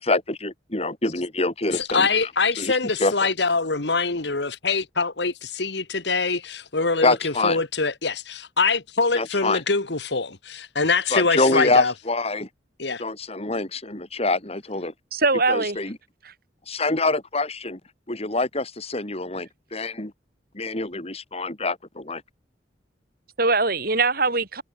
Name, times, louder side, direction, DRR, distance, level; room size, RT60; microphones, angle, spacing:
voice 1, 0.0-2.3 2.6-3.1 7.0-7.6 9.1-9.6 11.1-12.5 13.0-14.9 15.5-16.0 16.7-17.8 18.1-20.1 20.5-22.2, left 2 dB, 35° left, 3.6 m, -25 dB
voice 2, 1.7-11.9 12.8-13.0, left 4 dB, 75° left, 1.9 m, -24 dB
voice 3, 15.1-15.8 16.2-16.3 23.4-24.6, right 3 dB, 55° right, 7.5 m, -22 dB
head